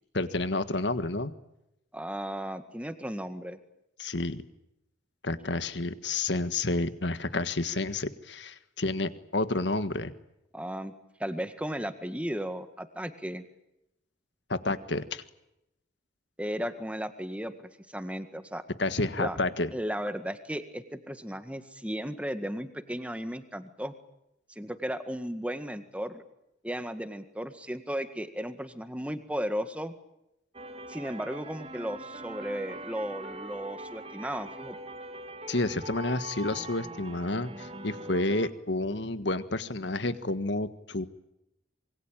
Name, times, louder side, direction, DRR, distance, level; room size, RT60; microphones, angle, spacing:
voice 1, 0.1-1.3 4.0-4.4 5.2-10.1 14.5-15.2 18.8-19.7 35.5-41.1, left 2 dB, 70° left, 12 dB, 1.7 m, -30 dB
voice 2, 1.9-3.6 10.5-10.9 11.2-13.5 16.4-17.5 17.9-18.6 19.2-19.4 19.7-23.9 24.5-26.2 26.6-29.9 30.9-34.8, equal, 5° right, 9 dB, 1.8 m, -35 dB
sound 1, 30.5-38.5, right 1 dB, 30° right, 2.0 m, -42 dB
26.5 x 23.0 x 8.9 m, 0.85 s
head